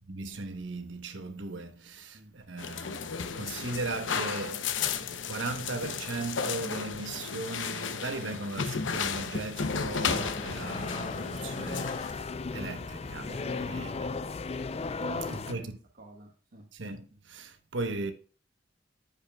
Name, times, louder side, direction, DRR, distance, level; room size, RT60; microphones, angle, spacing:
voice 1, 0.0-13.3 13.6-14.1 15.5-15.7 16.7-18.1, right 3 dB, 85° right, 1.0 m, -38 dB
sound 1, 2.6-12.1, left 6 dB, 85° left, 0.7 m, -34 dB
sound 2, 9.6-15.5, left 4 dB, 35° left, 0.4 m, -36 dB
voice 2, 13.2-14.1 15.0-15.7 16.0-16.7 17.1-17.2, right 2 dB, 55° right, 1.2 m, -47 dB
14.0 x 5.3 x 2.3 m
head